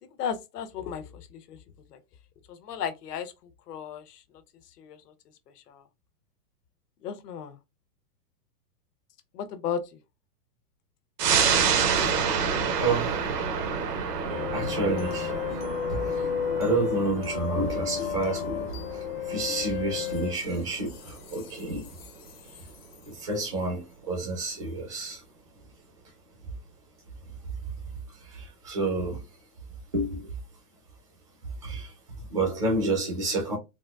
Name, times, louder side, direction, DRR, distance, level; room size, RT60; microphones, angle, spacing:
voice 1, 0.0-1.6 1.9-2.0 2.5-3.3 3.7-4.2 4.8-5.1 5.6-5.8 7.0-7.6 9.3-10.0, left 7 dB, 80° left, 0.9 m, -35 dB
sound 1, 11.2-22.2 22.6-22.7, right 6 dB, 85° right, 1.1 m, -29 dB
voice 2, 12.8-13.2 14.5-15.3 16.6-18.6 19.3-20.9 21.3-21.9 23.2-23.8 24.1-25.2 28.6-29.2 29.9-30.1 31.6-31.8 32.3-33.6, right 2 dB, 25° right, 0.4 m, -28 dB
sound 2, 14.3-23.2, left 8 dB, 40° left, 0.5 m, -33 dB
4.0 x 2.2 x 2.2 m
supercardioid pair, 165°, 47 cm